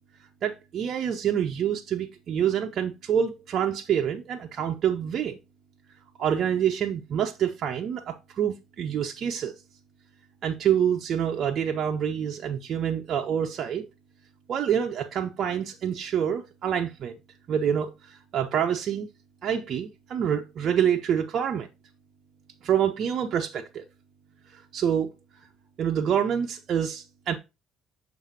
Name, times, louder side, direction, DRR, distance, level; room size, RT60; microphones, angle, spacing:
voice 1, 0.4-5.4 6.2-9.5 10.4-13.9 14.5-17.2 17.5-19.1 19.4-21.7 22.6-23.8 24.5-25.1 25.8-27.4, right 9 dB, 55° right, 0.7 m, -27 dB
7.3 x 6.0 x 2.8 m
hypercardioid pair, 55°, 0 cm